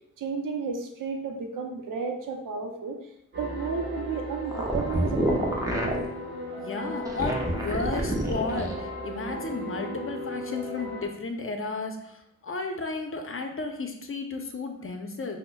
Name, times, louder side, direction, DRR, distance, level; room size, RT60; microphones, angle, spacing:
voice 1, 0.2-3.0 3.4-5.4, right 5 dB, 80° right, 3 dB, 0.6 m, -32 dB
sound 1, 3.3-11.1, equal, 35° right, 1.2 m, -36 dB
sound 2, 4.5-6.1 7.0-8.8, equal, 10° right, 0.8 m, -28 dB
voice 2, 6.6-15.4, left 3 dB, 40° left, 5 dB, 0.6 m, -33 dB
5.3 x 2.1 x 2.2 m, 0.81 s
cardioid pair, 40°, 32 cm